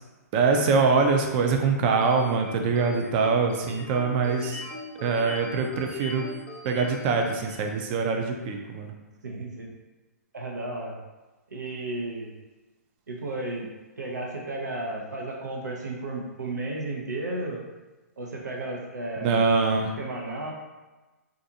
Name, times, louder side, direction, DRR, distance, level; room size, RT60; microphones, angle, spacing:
voice 1, 0.3-4.6 5.0-6.3 6.6-8.9 19.2-19.9, right 4 dB, 35° right, 3 dB, 0.4 m, -24 dB
sound 1, 2.0-7.8, left 2 dB, 15° left, 0.5 m, -41 dB
voice 2, 9.2-9.6 10.3-11.0 11.5-12.3 13.1-13.7 14.0-17.6 18.2-19.4 20.0-20.5, right 2 dB, 90° right, -1 dB, 0.7 m, -33 dB
2.5 x 2.4 x 2.7 m, 1.2 s
hypercardioid pair, 130°, 9 cm